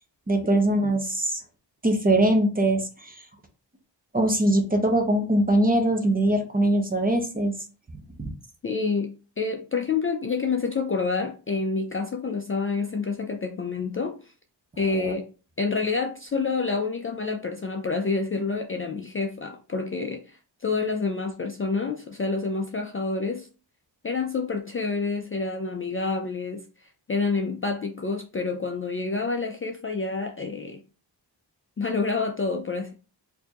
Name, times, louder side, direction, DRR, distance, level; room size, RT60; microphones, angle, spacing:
voice 1, 0.3-1.4 1.8-3.1 4.1-7.5 8.2-8.3 14.9-15.1, right 1 dB, 20° right, 4 dB, 0.6 m, -22 dB
voice 2, 8.6-14.3 14.8-15.2 15.6-23.5 24.0-26.6 27.1-30.8 31.8-32.9, left 4 dB, 30° left, 2 dB, 0.4 m, -28 dB
4.2 x 2.7 x 2.9 m, 0.35 s
wide cardioid pair, 150°, 44 cm